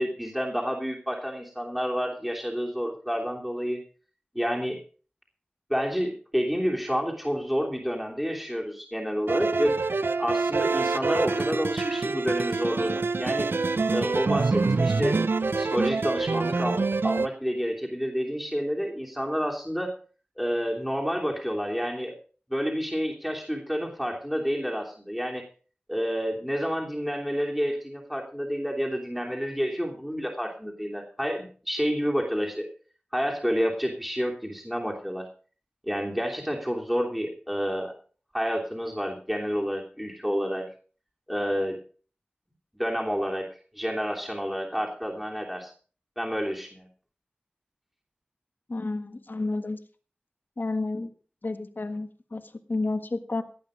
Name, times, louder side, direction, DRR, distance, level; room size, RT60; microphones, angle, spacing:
voice 1, 0.0-3.8 4.3-4.8 5.7-9.7 10.2-13.5 13.9-15.2 15.6-19.9 20.4-22.1 22.5-25.4 25.9-32.7 33.1-35.3 35.8-37.9 38.3-40.7 41.3-41.8 42.8-43.5 43.7-45.7 46.2-46.9, equal, 5° right, -1 dB, 3.1 m, -29 dB
sound 1, 9.3-17.3, right 4 dB, 85° right, 0.6 m, -26 dB
voice 2, 48.7-49.8 50.6-51.1 51.4-53.4, left 2 dB, 65° left, 9 dB, 1.5 m, -31 dB
17.5 x 8.9 x 5.1 m, 0.40 s
wide cardioid pair, 55°, 4 cm